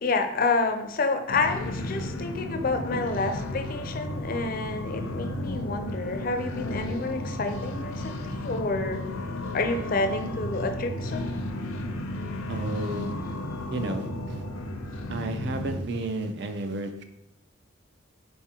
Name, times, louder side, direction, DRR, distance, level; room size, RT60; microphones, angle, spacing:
voice 1, 0.0-9.0 9.5-11.3, left 3 dB, 45° left, 6 dB, 0.4 m, -29 dB
sound 1, 1.3-15.8, left 1 dB, 90° left, 0.5 m, -33 dB
voice 2, 12.5-13.1 13.7-14.4 15.1-17.0, right 2 dB, 55° right, 7 dB, 0.4 m, -32 dB
4.4 x 3.5 x 2.9 m, 0.85 s
head